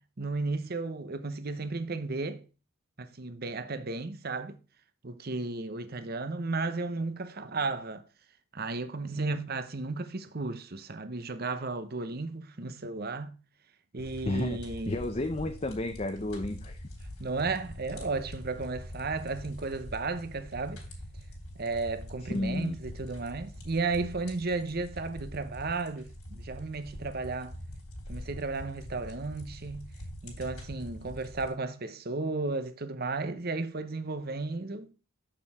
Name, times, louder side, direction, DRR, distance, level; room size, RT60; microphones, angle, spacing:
voice 1, 0.2-2.4 3.0-4.6 5.0-8.0 8.5-13.3 13.9-15.0 17.2-20.8 21.6-27.6 28.1-29.9 30.2-34.9, right 3 dB, 45° right, 0.8 m, -34 dB
sound 1, 14.0-31.5, equal, 85° left, 3.7 m, -44 dB
voice 2, 14.3-16.8 22.2-22.8, left 2 dB, 30° left, 0.6 m, -32 dB
7.8 x 6.7 x 3.5 m
head